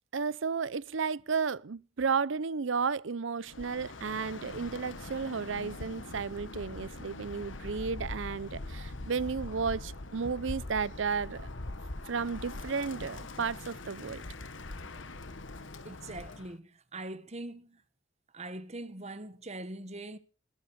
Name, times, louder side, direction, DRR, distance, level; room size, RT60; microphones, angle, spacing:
voice 1, 0.1-11.5 12.1-14.2, right 5 dB, 65° right, 0.6 m, -33 dB
Bird, 3.4-16.5, left 2 dB, 70° left, 1.5 m, -42 dB
voice 2, 15.8-17.8 18.3-20.2, right 2 dB, 35° right, 1.5 m, -42 dB
20.5 x 7.9 x 6.4 m
head